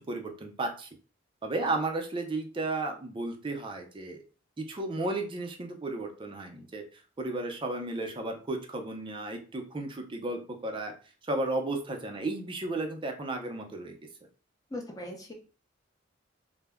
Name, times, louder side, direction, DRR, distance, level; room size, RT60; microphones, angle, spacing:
voice 1, 0.1-0.9 1.4-4.2 4.6-6.8 7.2-10.9 11.2-14.0, right 2 dB, 25° right, 4 dB, 0.5 m, -33 dB
voice 2, 14.7-15.3, left 1 dB, 20° left, 0 dB, 0.7 m, -39 dB
2.1 x 2.0 x 3.4 m, 0.37 s
head